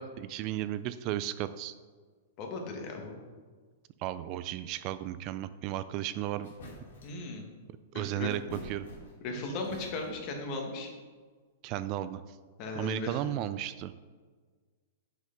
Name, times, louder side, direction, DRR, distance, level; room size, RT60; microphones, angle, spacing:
voice 1, 0.0-1.7 4.0-6.5 7.9-8.9 11.6-12.2 12.8-14.0, right 13 dB, 40° right, 13 dB, 0.3 m, -34 dB
voice 2, 2.4-3.2 7.0-7.5 7.9-8.3 9.2-10.9 12.6-13.2, left 3 dB, 40° left, 2 dB, 1.6 m, -37 dB
sound 1, 6.4-7.2 8.3-9.3 9.6-10.3, left 1 dB, 80° left, 2.2 m, -47 dB
6.2 x 5.7 x 5.1 m, 1.5 s
hypercardioid pair, 135°, 0 cm